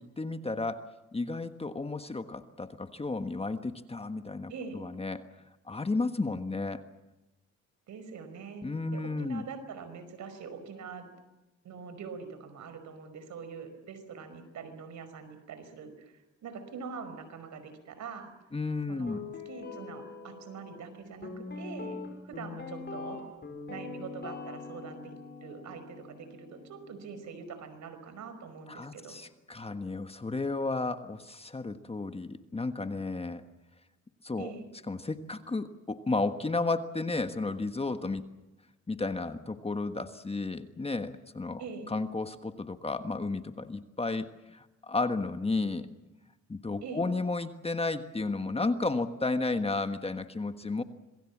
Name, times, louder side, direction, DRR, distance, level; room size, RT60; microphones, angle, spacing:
voice 1, 0.0-5.2 5.7-6.8 8.6-9.4 18.5-19.2 28.7-33.4 34.2-34.5 34.9-38.2 38.9-41.6 41.9-45.9 46.5-50.8, left 3 dB, 20° left, 9 dB, 1.4 m, -33 dB
voice 2, 4.5-4.8 7.9-8.6 8.9-11.1 11.6-18.3 18.9-22.0 22.2-23.2 23.7-25.1 25.4-29.2 34.4-34.6 41.6-41.9 46.8-47.1, right 5 dB, 70° right, 10 dB, 5.3 m, -44 dB
Guitar, 19.1-27.2, left 4 dB, 35° left, 6.1 m, -43 dB
26.5 x 21.0 x 7.4 m, 1.0 s
cardioid pair, 90°, 30 cm